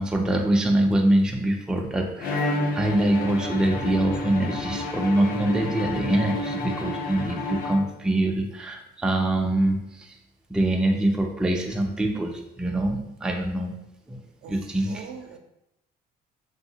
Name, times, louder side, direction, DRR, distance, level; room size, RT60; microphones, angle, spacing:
voice 1, 0.0-10.2 10.5-13.7 14.1-14.2 14.5-15.1, right 1 dB, 5° right, 2 dB, 0.3 m, -24 dB
Bowed string instrument, 2.2-8.2, left 2 dB, 60° left, 0.5 m, -30 dB
voice 2, 14.4-15.4, right 7 dB, 70° right, 5 dB, 0.5 m, -42 dB
3.0 x 2.7 x 2.8 m, 0.84 s
cardioid pair, 110°, 17 cm